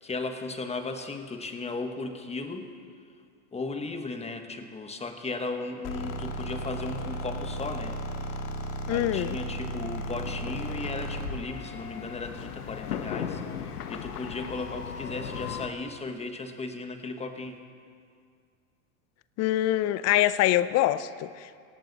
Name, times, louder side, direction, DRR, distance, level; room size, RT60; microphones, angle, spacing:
voice 1, 0.0-2.7 3.5-8.0 8.9-17.6, left 3 dB, 15° left, 1.3 m, -36 dB
sound 1, 5.8-11.4, equal, 60° left, 2.1 m, -34 dB
voice 2, 8.9-9.4 19.4-21.6, left 14 dB, 35° left, 0.5 m, -25 dB
sound 2, 9.0-15.7, left 8 dB, 90° left, 1.2 m, -38 dB
18.5 x 16.5 x 4.1 m
hypercardioid pair, 110°, 45 cm